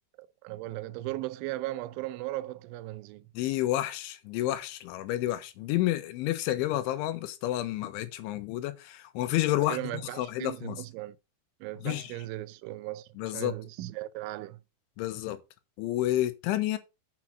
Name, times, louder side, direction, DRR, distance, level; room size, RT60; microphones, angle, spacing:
voice 1, 0.2-3.3 9.7-11.2 11.6-14.6, right 17 dB, 85° right, 3.1 m, -37 dB
voice 2, 3.4-9.8 10.2-10.8 11.8-12.1 13.2-13.5 15.0-15.4 15.8-16.8, left 14 dB, 90° left, 3.5 m, -30 dB
7.5 x 6.1 x 5.8 m
omnidirectional pair, 5.4 m